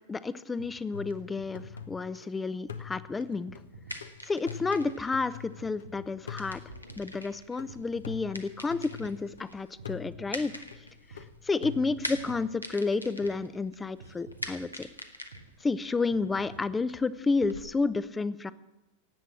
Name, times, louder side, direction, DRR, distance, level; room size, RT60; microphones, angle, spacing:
voice 1, 0.1-3.5 4.3-6.6 7.0-10.5 11.5-14.9 15.6-18.5, left 4 dB, 15° left, 17 dB, 0.6 m, -30 dB
sound 1, 0.6-0.7 1.1-1.2 1.4-1.9 2.2-2.3 2.7-2.8 3.2-3.3 3.5-4.0 4.3-4.4 4.8-4.9 5.3-5.4 5.6-6.1 6.4-6.5 6.9-7.0 7.4-8.2 8.5-8.6 9.0-9.1 9.5-9.6 9.8-10.3 10.6-10.7 11.1-11.2 11.6-11.7 11.9-12.4 12.7-12.8 13.2-13.3 13.7-13.8 14.0-14.5 14.8-14.9 15.3-15.4 15.8-15.9 16.1-16.6 16.9-17.0, right 3 dB, 70° right, 2.7 m, -49 dB
sound 2, 0.9-2.3 2.7-5.8 6.3-9.4 9.8-12.5, left 9 dB, 70° left, 0.9 m, -45 dB
sound 3, 3.6-17.6, equal, 90° left, 1.2 m, -45 dB
18.0 x 8.3 x 7.4 m, 1.0 s
figure-of-eight pair, 90°, 0 cm